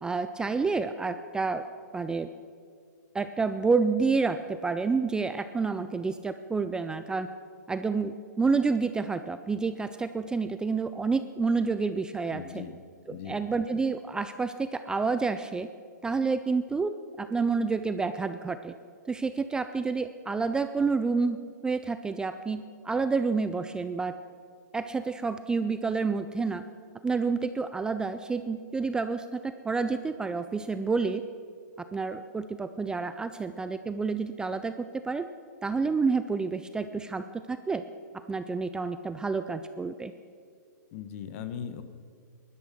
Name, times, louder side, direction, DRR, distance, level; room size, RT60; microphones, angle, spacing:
voice 1, 0.0-1.6 1.9-2.3 3.1-7.3 7.7-12.6 13.1-15.7 16.0-18.7 19.1-24.1 24.7-26.6 27.0-31.2 31.9-34.7 35.0-35.3 35.6-37.8 38.3-40.1, right 4 dB, 10° right, 10 dB, 0.4 m, -29 dB
voice 2, 12.3-12.8 13.1-13.4 40.9-41.8, left 8 dB, 45° left, 11 dB, 1.2 m, -39 dB
17.0 x 11.5 x 6.0 m, 2.1 s
hypercardioid pair, 135°, 10 cm